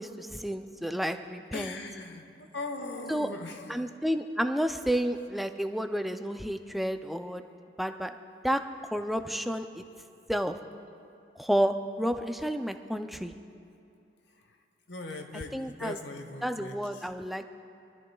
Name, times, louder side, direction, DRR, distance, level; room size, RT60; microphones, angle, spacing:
voice 1, 0.0-1.8 3.1-3.3 3.7-7.5 7.8-8.1 8.4-8.6 8.9-9.8 10.3-10.6 11.4-13.3 15.3-16.0 16.4-17.5, equal, ahead, 7 dB, 0.4 m, -31 dB
voice 2, 1.5-3.8 14.4-14.6 14.9-17.1, left 2 dB, 80° left, 6 dB, 1.0 m, -40 dB
23.5 x 13.0 x 2.3 m, 2.7 s
head